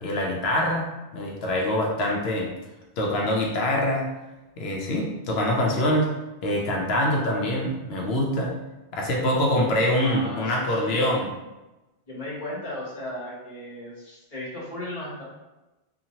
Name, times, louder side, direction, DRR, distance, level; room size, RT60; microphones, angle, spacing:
voice 1, 0.0-0.9 1.1-2.5 3.0-4.1 4.6-6.1 6.4-8.5 8.9-11.3, left 1 dB, 90° left, -1 dB, 0.8 m, -24 dB
voice 2, 10.0-11.2 12.1-15.2, left 1 dB, 40° left, -6 dB, 1.1 m, -35 dB
2.9 x 2.4 x 2.6 m, 1.0 s
omnidirectional pair, 1.0 m